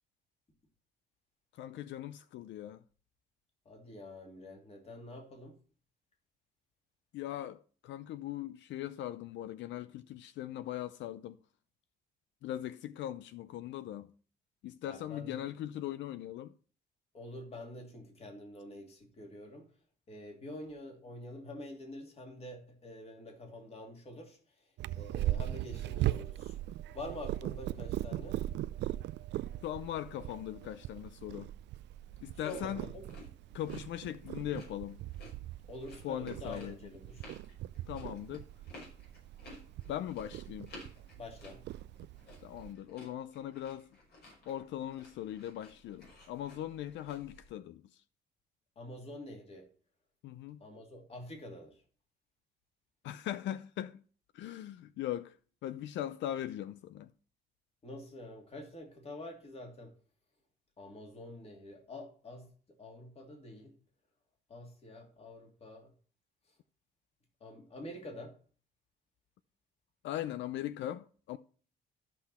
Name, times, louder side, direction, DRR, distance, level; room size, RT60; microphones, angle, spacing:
voice 1, 1.6-2.8 7.1-11.4 12.4-14.1 14.6-16.5 20.5-20.6 25.2-25.4 29.6-31.5 32.2-32.8 33.5-35.0 36.0-36.8 37.9-38.5 39.9-40.7 42.4-43.9 44.5-47.8 50.2-50.6 53.0-54.0 54.3-55.4 55.6-57.1 70.0-71.4, left 12 dB, 75° left, 0.5 m, -40 dB
voice 2, 3.6-5.6 14.8-15.4 17.1-19.7 20.1-24.4 24.9-26.6 26.9-28.4 32.4-33.0 35.7-37.3 41.2-41.6 48.8-49.7 50.6-51.8 57.8-59.9 60.8-62.5 62.8-63.7 64.5-65.9 67.4-68.4, left 1 dB, 30° left, 2.8 m, -47 dB
Purr, 24.8-42.7, right 14 dB, 70° right, 0.4 m, -39 dB
sound 1, 31.9-47.5, left 2 dB, 60° left, 5.9 m, -56 dB
13.0 x 6.0 x 4.3 m
cardioid pair, 125°, 19 cm